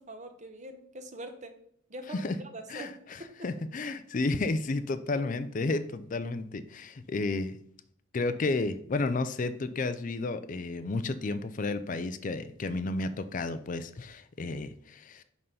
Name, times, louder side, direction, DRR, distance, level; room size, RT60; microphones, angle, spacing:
voice 1, 0.0-1.5 1.9-2.2 2.5-3.3, right 1 dB, 35° right, 7 dB, 0.9 m, -43 dB
voice 2, 2.7-7.6 8.1-15.2, left 3 dB, 40° left, 11 dB, 0.4 m, -32 dB
5.6 x 5.5 x 5.4 m, 0.66 s
head